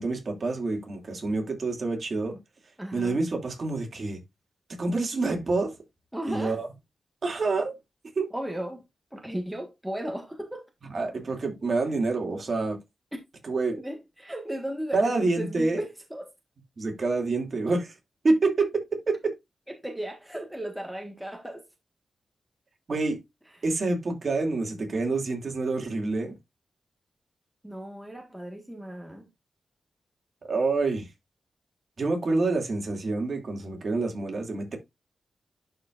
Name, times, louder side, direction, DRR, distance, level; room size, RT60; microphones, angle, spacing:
voice 1, 0.0-2.4 2.9-4.2 4.8-5.7 6.3-6.7 7.2-7.7 8.2-8.3 10.9-12.8 13.4-13.8 14.9-15.8 16.8-17.9 18.2-19.3 22.9-23.2 23.6-26.3 30.5-31.1 32.0-34.8, right 3 dB, 50° right, 2.7 m, -27 dB
voice 2, 2.8-3.2 6.1-6.6 8.3-8.8 9.1-10.7 13.1-13.2 13.7-16.3 19.7-21.6 27.6-29.3, right 1 dB, 5° right, 1.6 m, -36 dB
11.5 x 4.8 x 2.5 m
wide cardioid pair, 110°, 0 cm